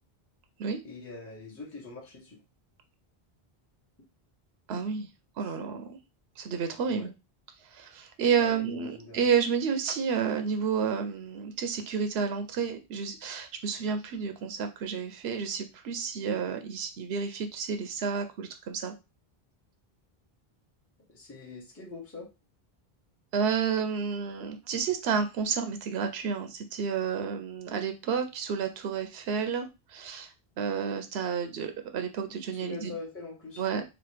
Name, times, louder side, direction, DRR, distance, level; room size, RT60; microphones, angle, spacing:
voice 1, 0.8-2.4 6.9-7.1 8.4-9.2 21.1-22.3 32.6-33.6, left 4 dB, 15° left, -2 dB, 0.8 m, -43 dB
voice 2, 4.7-5.1 5.4-6.0 6.4-7.1 7.6-18.9 23.3-32.9 33.6-33.8, right 6 dB, 85° right, 7 dB, 0.8 m, -30 dB
3.0 x 2.2 x 3.2 m, 0.26 s
omnidirectional pair, 1.0 m